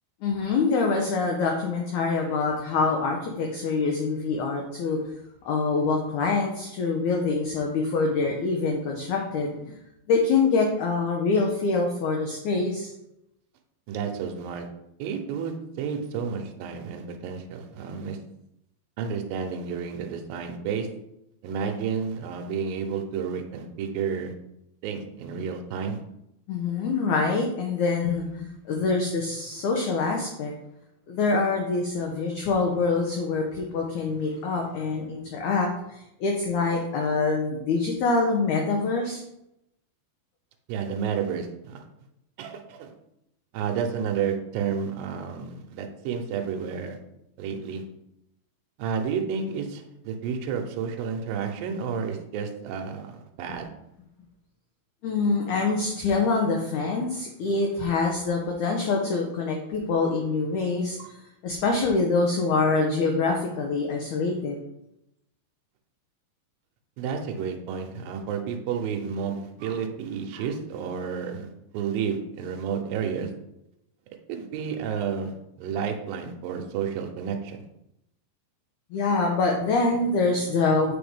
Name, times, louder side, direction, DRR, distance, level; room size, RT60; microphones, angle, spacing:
voice 1, 0.2-5.0 5.4-9.7 10.1-12.9 26.5-30.5 31.1-39.2 55.0-64.6 78.9-81.0, left 4 dB, 80° left, 1 dB, 1.7 m, -25 dB
voice 2, 13.9-14.7 15.0-18.2 19.0-20.9 21.4-24.3 24.8-26.0 40.7-41.8 42.4-42.9 43.5-47.0 47.4-47.8 48.8-53.7 61.0-61.1 67.0-73.3 74.3-75.3 75.6-77.6, right 6 dB, 80° right, 4 dB, 2.4 m, -31 dB
7.8 x 4.6 x 3.5 m, 0.83 s
omnidirectional pair, 4.4 m